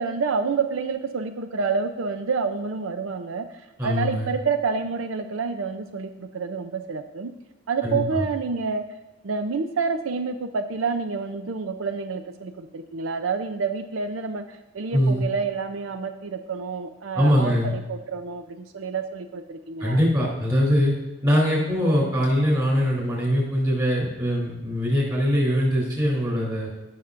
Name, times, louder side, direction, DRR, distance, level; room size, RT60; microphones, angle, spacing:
voice 1, 0.0-7.3 7.7-8.9 9.2-20.0, right 5 dB, 90° right, 7 dB, 0.5 m, -28 dB
voice 2, 3.8-4.3 7.8-8.0 14.9-15.2 17.1-17.7 19.8-20.9 21.2-26.7, equal, 20° right, -3 dB, 3.2 m, -22 dB
16.0 x 5.9 x 2.5 m, 1.0 s
head